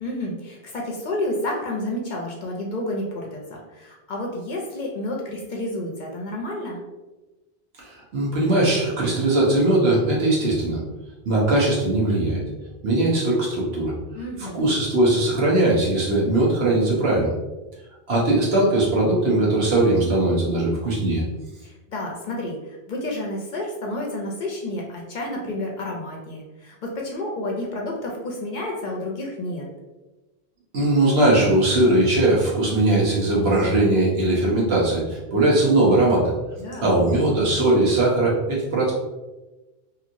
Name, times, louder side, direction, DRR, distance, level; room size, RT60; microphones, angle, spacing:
voice 1, 0.0-6.8 14.1-14.6 21.6-29.7 36.6-36.9, left 1 dB, 55° left, -1 dB, 0.6 m, -30 dB
voice 2, 7.8-10.8 11.2-12.4 12.8-13.9 14.4-17.3 18.1-21.2 30.7-36.3 36.8-38.9, right 2 dB, 75° right, -4 dB, 1.2 m, -20 dB
2.9 x 2.7 x 2.5 m, 1.1 s
omnidirectional pair, 1.1 m